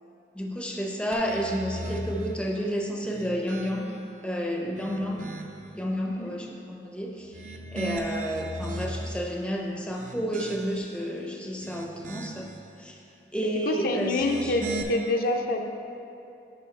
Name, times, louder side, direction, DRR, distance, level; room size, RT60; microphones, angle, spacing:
voice 1, 0.3-3.9 4.2-5.2 5.8-7.3 7.7-12.5 12.8-13.0 13.3-14.5, equal, 5° left, 0 dB, 0.6 m, -31 dB
sound 1, 1.1-2.4 3.0-4.1 4.6-5.7 7.2-9.3 9.8-11.0 11.4-12.6 14.0-14.8, right 2 dB, 50° right, 0.6 m, -38 dB
voice 2, 13.7-15.6, left 2 dB, 55° left, 3 dB, 0.5 m, -27 dB
10.5 x 4.8 x 3.2 m, 2.8 s
head